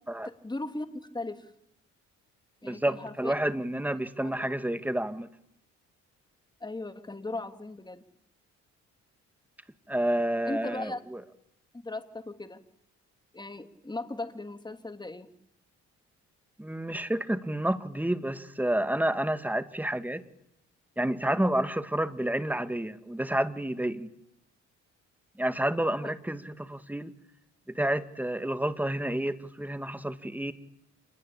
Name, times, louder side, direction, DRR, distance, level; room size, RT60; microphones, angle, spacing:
voice 1, 0.2-0.9 1.1-1.5 2.6-3.3 4.2-4.3 6.6-8.0 10.5-11.0 11.8-12.6 13.3-15.3 26.0-26.1, left 2 dB, 15° left, 8 dB, 2.9 m, -37 dB
voice 2, 2.6-5.3 9.9-11.2 16.6-20.2 21.0-24.1 25.4-27.1 27.7-30.5, right 1 dB, 5° right, 10 dB, 2.0 m, -29 dB
28.5 x 21.0 x 8.7 m, 0.75 s
cardioid pair, 90°, 30 cm